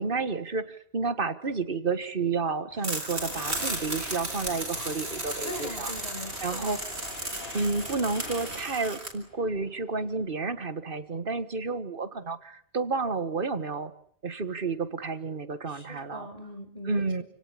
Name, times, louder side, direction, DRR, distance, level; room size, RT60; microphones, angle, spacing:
voice 1, 0.0-5.9 6.4-6.8 7.5-13.9 14.2-16.3 16.9-17.2, right 4 dB, 55° right, 12 dB, 1.8 m, -31 dB
sound 1, 2.7-10.1, left 3 dB, 65° left, 2.8 m, -44 dB
sound 2, 2.8-9.1, right 2 dB, 80° right, 4.5 m, -35 dB
voice 2, 5.4-6.8 15.7-17.2, left 1 dB, 35° left, 6 dB, 5.3 m, -41 dB
29.0 x 17.5 x 10.0 m, 0.63 s
omnidirectional pair, 1.1 m